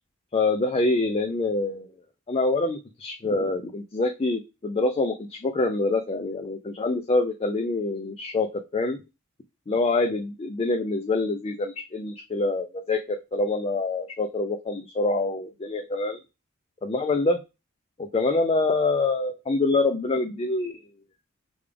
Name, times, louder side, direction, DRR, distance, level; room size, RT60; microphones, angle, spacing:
voice 1, 0.3-1.9 2.3-8.5 8.7-9.0 9.7-16.2 16.8-17.4 18.0-20.8, left 3 dB, 30° left, 4 dB, 0.4 m, -25 dB
5.1 x 2.4 x 3.3 m, 0.25 s
head